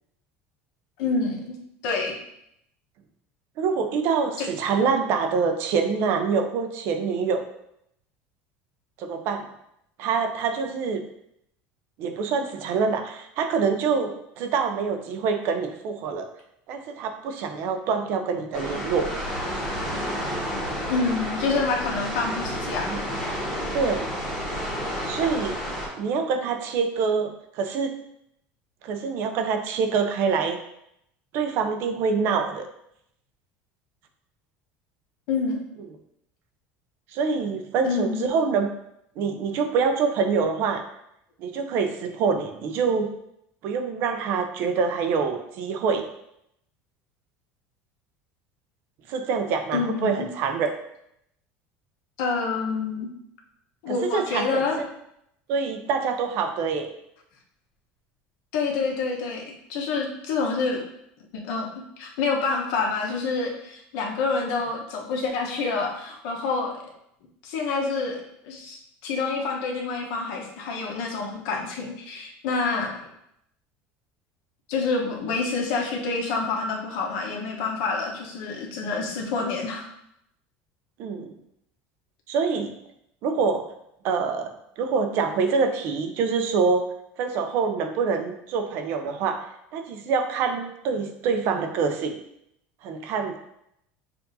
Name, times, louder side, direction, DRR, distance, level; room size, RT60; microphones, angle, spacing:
voice 1, 1.0-1.6 1.8-2.2 4.4-4.5 20.9-22.9 35.3-35.6 37.8-38.3 49.7-50.3 52.2-53.1 53.8-54.8 58.5-60.8 61.4-61.7 62.0-66.8 67.4-72.9 74.7-79.9, left 4 dB, 70° left, 0 dB, 0.9 m, -27 dB
voice 2, 3.6-7.5 9.0-9.5 10.0-11.0 12.0-14.1 14.4-16.3 16.7-19.1 22.9-23.0 23.7-24.1 25.0-25.6 26.0-27.9 28.8-30.6 31.3-32.7 37.1-38.7 39.2-40.8 41.4-43.1 43.6-46.1 49.1-50.7 53.9-54.9 55.5-56.9 81.0-81.3 82.3-82.7 83.2-83.7 84.0-86.9 87.2-89.4 89.7-92.2 92.8-93.4, right 5 dB, 50° right, 6 dB, 0.5 m, -25 dB
sound 1, 18.5-25.9, equal, 5° left, 1.3 m, -30 dB
6.8 x 2.6 x 2.6 m, 0.77 s
cardioid pair, 160°, 5 cm